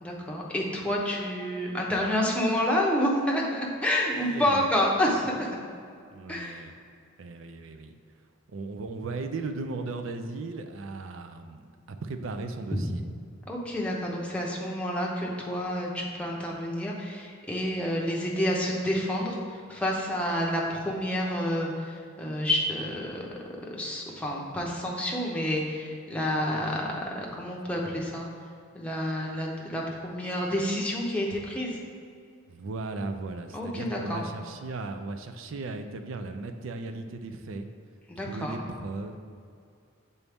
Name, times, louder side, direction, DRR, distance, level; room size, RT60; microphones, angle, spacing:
voice 1, 0.0-5.5 6.3-6.6 13.5-23.3 23.7-28.3 28.7-31.8 33.5-34.2 38.1-38.6, left 1 dB, 5° left, -3 dB, 0.7 m, -29 dB
voice 2, 4.1-4.7 6.1-6.7 7.2-7.9 8.5-11.6 11.9-13.0 32.5-37.7 38.2-39.2, right 3 dB, 70° right, 7 dB, 0.4 m, -36 dB
7.0 x 4.1 x 3.5 m, 2.3 s
head